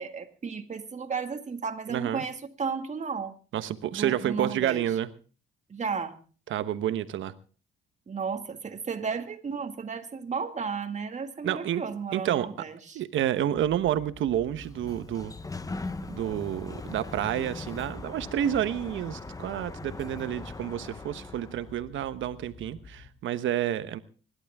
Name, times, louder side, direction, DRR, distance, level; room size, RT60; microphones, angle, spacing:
voice 1, 0.0-3.3 3.9-4.9 5.7-6.2 8.1-13.0, right 5 dB, 35° right, 2.0 m, -33 dB
voice 2, 1.9-2.2 3.5-5.1 6.5-7.3 11.4-11.8 12.1-12.5 12.9-15.3 16.1-24.0, right 11 dB, 75° right, 1.1 m, -29 dB
sound 1, 13.5-23.1, left 4 dB, 60° left, 2.9 m, -50 dB
Sliding door, 14.4-21.8, left 3 dB, 15° left, 0.9 m, -40 dB
26.0 x 11.5 x 3.6 m
cardioid pair, 90°, 20 cm